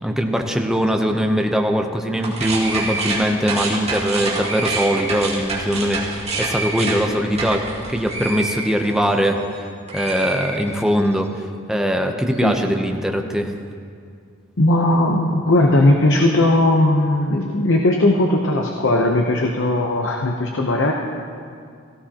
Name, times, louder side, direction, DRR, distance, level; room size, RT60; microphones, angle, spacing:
voice 1, 0.0-7.6 7.9-9.4 9.9-11.3 11.7-13.5, equal, 5° right, 3 dB, 0.7 m, -21 dB
sound 1, 2.2-9.6 9.9-11.1, right 2 dB, 35° right, 2.2 m, -27 dB
voice 2, 14.6-20.9, left 1 dB, 65° left, 1 dB, 0.9 m, -18 dB
17.5 x 15.5 x 2.9 m, 2.2 s
head